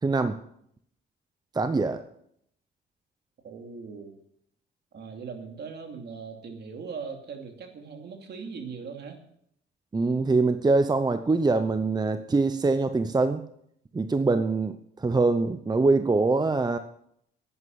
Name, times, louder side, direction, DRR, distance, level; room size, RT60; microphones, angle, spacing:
voice 1, 0.0-0.4 1.5-2.0 9.9-13.4 13.9-16.8, right 3 dB, 20° right, 10 dB, 0.8 m, -24 dB
voice 2, 3.4-4.1 4.9-9.2, right 5 dB, 60° right, 4 dB, 2.7 m, -39 dB
11.0 x 9.7 x 7.8 m, 0.72 s
cardioid pair, 90°, 20 cm